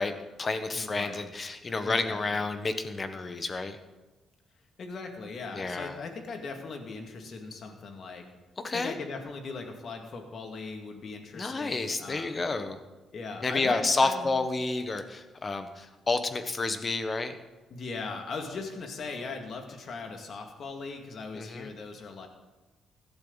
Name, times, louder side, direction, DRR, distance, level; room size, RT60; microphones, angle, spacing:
voice 1, 0.0-3.8 5.5-5.9 8.6-9.0 11.3-12.8 13.4-17.4 21.3-21.7, left 3 dB, 30° left, 9 dB, 1.3 m, -30 dB
voice 2, 0.7-1.3 1.8-2.5 4.8-8.3 8.7-12.4 13.1-14.3 17.7-22.3, left 4 dB, 55° left, 4 dB, 2.3 m, -39 dB
16.0 x 12.0 x 4.1 m, 1.2 s
cardioid pair, 90°, 0 cm